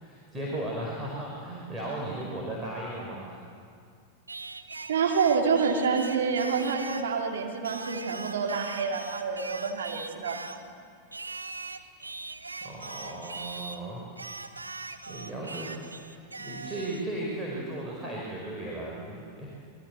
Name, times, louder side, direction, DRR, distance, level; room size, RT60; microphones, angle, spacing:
voice 1, 0.0-3.4 12.6-14.0 14.7-19.6, right 1 dB, 10° right, -4 dB, 5.1 m, -36 dB
Singing, 4.3-7.1 7.6-10.7 11.1-13.8 14.2-17.1, right 3 dB, 80° right, 1.1 m, -41 dB
voice 2, 4.9-10.5, right 5 dB, 60° right, 1 dB, 2.8 m, -27 dB
27.5 x 22.0 x 8.0 m, 2.3 s
figure-of-eight pair, 90°, 0 cm